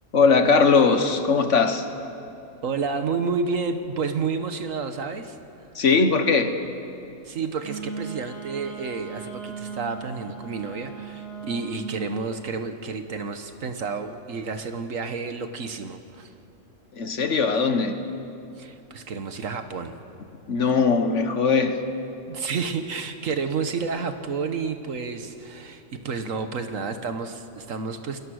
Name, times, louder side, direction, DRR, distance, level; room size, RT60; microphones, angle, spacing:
voice 1, 0.1-1.9 5.7-6.6 16.9-18.0 20.5-21.8, left 4 dB, 65° left, 8 dB, 1.6 m, -20 dB
voice 2, 2.6-5.4 7.2-16.3 18.6-20.0 22.3-28.2, right 5 dB, 75° right, 8 dB, 1.5 m, -30 dB
Wind instrument woodwind instrument, 7.6-12.0, right 6 dB, 20° left, 6.5 m, -38 dB
29.0 x 21.0 x 6.4 m, 2.8 s
omnidirectional pair, 1.4 m